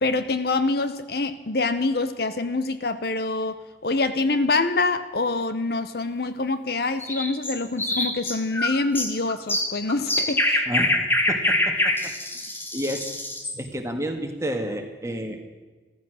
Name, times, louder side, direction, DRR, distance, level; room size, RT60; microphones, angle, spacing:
voice 1, 0.0-10.7, left 3 dB, 55° left, 12 dB, 0.8 m, -25 dB
sound 1, 7.0-13.6, left 1 dB, 10° left, 1.5 m, -25 dB
voice 2, 11.3-11.7 12.7-13.1 13.5-15.4, equal, 15° right, 4 dB, 1.7 m, -30 dB
15.0 x 14.5 x 6.4 m, 1.3 s
head